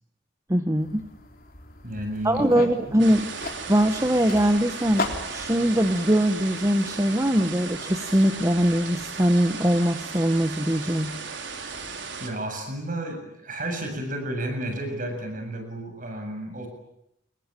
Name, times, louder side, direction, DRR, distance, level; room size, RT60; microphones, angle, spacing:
voice 1, 0.5-1.0 2.2-3.3 3.7-11.2, equal, 15° right, 7 dB, 1.3 m, -22 dB
sound 1, 0.8-6.1, left 3 dB, 50° left, 3.7 m, -36 dB
voice 2, 1.8-2.8 12.2-16.7, right 1 dB, 45° right, 5 dB, 7.7 m, -32 dB
sound 2, 3.0-12.3, right 5 dB, 75° right, 4.5 m, -36 dB
28.0 x 22.5 x 9.1 m, 0.80 s
head